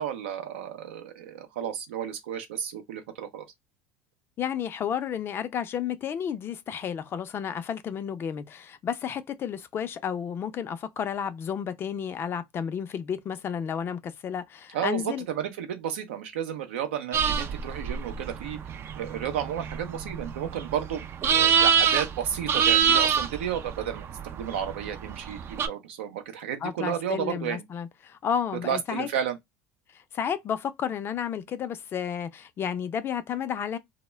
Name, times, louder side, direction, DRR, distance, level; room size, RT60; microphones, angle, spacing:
voice 1, 0.0-3.5 14.7-18.6 19.0-24.1 24.3-27.6 28.6-29.4, right 9 dB, 85° right, 0.6 m, -32 dB
voice 2, 4.4-15.2 26.6-29.1 29.9-33.8, left 8 dB, 40° left, 0.4 m, -32 dB
sound 1, 17.1-25.7, right 7 dB, 40° right, 0.4 m, -26 dB
2.1 x 2.0 x 3.2 m
supercardioid pair, 90°, 6 cm